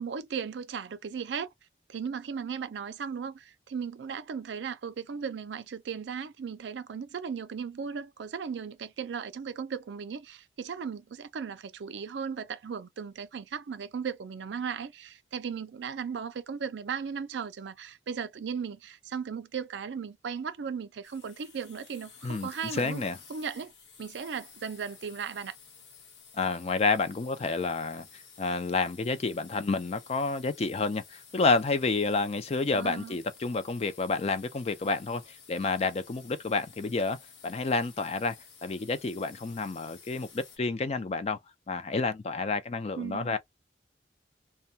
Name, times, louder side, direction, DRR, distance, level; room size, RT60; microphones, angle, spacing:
voice 1, 0.0-1.5 1.9-23.0 23.3-23.7 24.0-25.5 32.7-33.2 43.0-43.4, right 6 dB, 80° right, 0.4 m, -36 dB
sound 1, 21.0-40.6, left 6 dB, 75° left, 0.9 m, -53 dB
voice 2, 22.2-23.2 26.3-37.2 37.4-38.4 38.6-41.4 41.7-43.4, left 3 dB, 35° left, 0.4 m, -29 dB
2.2 x 2.2 x 2.7 m
head